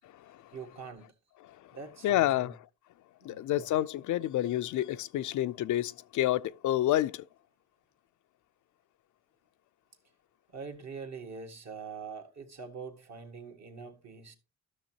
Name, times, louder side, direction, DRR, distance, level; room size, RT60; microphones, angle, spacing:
voice 1, 0.5-1.1 1.7-2.6 3.2-3.7 10.5-14.4, right 5 dB, 55° right, 1.7 m, -44 dB
voice 2, 2.0-2.5 3.2-7.3, left 13 dB, 70° left, 0.4 m, -29 dB
13.0 x 6.3 x 2.9 m
cardioid pair, 90°, 31 cm